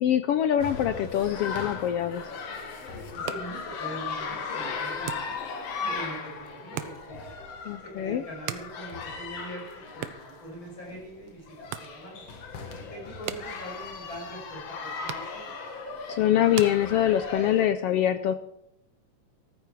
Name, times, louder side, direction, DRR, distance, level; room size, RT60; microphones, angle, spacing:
voice 1, 0.0-2.2 7.6-8.2 16.1-18.3, left 11 dB, 80° left, 10 dB, 1.3 m, -24 dB
sound 1, 0.6-17.7, left 4 dB, 60° left, 2.7 m, -37 dB
sound 2, 3.0-17.5, right 10 dB, 70° right, 1.5 m, -44 dB
voice 2, 3.1-5.3 5.8-7.2 7.8-12.3 12.9-15.5, right 1 dB, 40° left, -1 dB, 6.5 m, -42 dB
14.5 x 14.0 x 4.7 m, 0.78 s
omnidirectional pair, 3.3 m